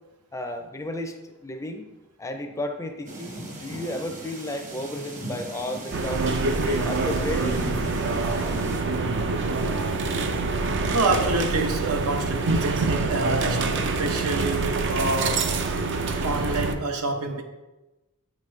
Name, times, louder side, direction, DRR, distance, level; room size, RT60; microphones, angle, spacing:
voice 1, 0.3-1.8 2.2-6.2 6.6-7.6, left 1 dB, 15° left, 6 dB, 0.5 m, -33 dB
sound 1, 3.1-8.8, right 1 dB, 35° right, 1.1 m, -38 dB
sound 2, 5.9-16.7, right 3 dB, 55° right, 0.5 m, -25 dB
voice 2, 10.9-13.7 14.0-15.5 16.2-17.4, right 2 dB, 80° right, 5 dB, 0.8 m, -27 dB
8.2 x 5.2 x 3.2 m, 1.1 s
head